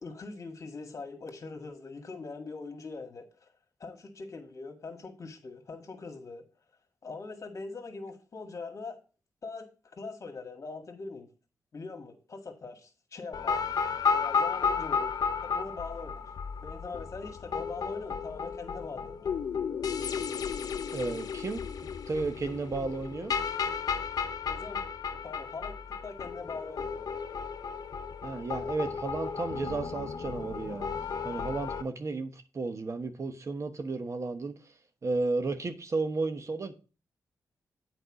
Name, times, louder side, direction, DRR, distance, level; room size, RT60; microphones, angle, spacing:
voice 1, 0.0-3.5 3.8-6.4 7.0-9.0 9.4-9.7 10.0-11.3 11.7-13.7 14.1-15.2 15.4-16.2 16.6-19.4 24.4-24.8 25.1-25.8 26.0-27.1, left 4 dB, 50° left, 1.8 m, -42 dB
sound 1, 13.3-31.8, left 6 dB, 70° left, 0.7 m, -33 dB
voice 2, 20.9-23.3 28.2-30.9 31.2-34.5 35.0-36.7, right 3 dB, 45° right, 1.1 m, -33 dB
8.0 x 4.8 x 4.8 m
cardioid pair, 65°, 7 cm